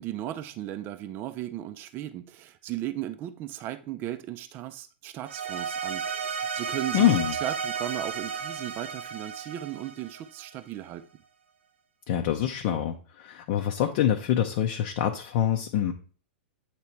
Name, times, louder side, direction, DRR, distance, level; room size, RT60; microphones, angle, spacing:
voice 1, 0.0-7.1 7.4-11.1, right 13 dB, 35° right, 0.5 m, -36 dB
sound 1, 5.3-10.6, right 6 dB, 85° right, 0.6 m, -33 dB
voice 2, 6.9-7.3 12.1-15.9, left 10 dB, 50° left, 0.6 m, -25 dB
8.2 x 2.9 x 4.4 m
hypercardioid pair, 120°, 6 cm